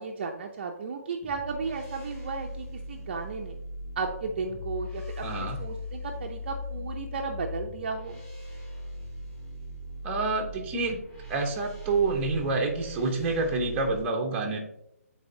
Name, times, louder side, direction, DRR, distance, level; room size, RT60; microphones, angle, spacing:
voice 1, 0.0-3.6 4.0-8.2, right 4 dB, 40° right, 3 dB, 0.6 m, -34 dB
sound 1, 1.2-14.0, left 1 dB, 10° left, 1.9 m, -39 dB
voice 2, 5.2-5.6 10.0-11.0 11.3-14.6, right 3 dB, 15° right, 0 dB, 0.9 m, -28 dB
9.3 x 4.1 x 2.7 m, 0.78 s
figure-of-eight pair, 150°, 8 cm